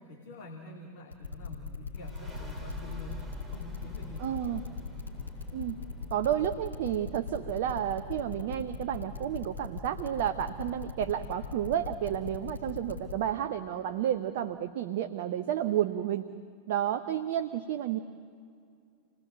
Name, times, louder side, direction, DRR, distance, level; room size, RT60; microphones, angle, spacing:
voice 1, 0.0-3.2 3.5-4.6, left 1 dB, 50° left, 0 dB, 2.6 m, -46 dB
sound 1, 1.1-13.1, left 5 dB, 75° left, 3.7 m, -39 dB
sound 2, 2.0-13.2, right 1 dB, ahead, 3.3 m, -49 dB
voice 2, 4.2-4.6 5.5-5.8 6.1-16.3 16.7-18.0, right 10 dB, 50° right, 9 dB, 0.8 m, -31 dB
28.0 x 19.0 x 7.7 m, 2.4 s
figure-of-eight pair, 90°, 0 cm